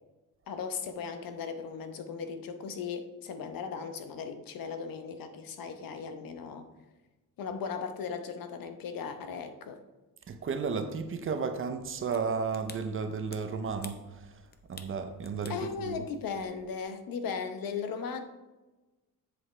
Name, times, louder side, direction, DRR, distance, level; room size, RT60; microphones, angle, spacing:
voice 1, 0.5-6.7 7.4-9.8 15.5-18.2, left 6 dB, 70° left, 8 dB, 1.0 m, -37 dB
voice 2, 10.3-14.3 14.7-16.0, right 5 dB, 35° right, 8 dB, 0.6 m, -33 dB
sound 1, 11.8-16.8, left 5 dB, 30° left, 0.6 m, -52 dB
7.8 x 7.7 x 3.2 m, 1.1 s
cardioid pair, 180°, 35 cm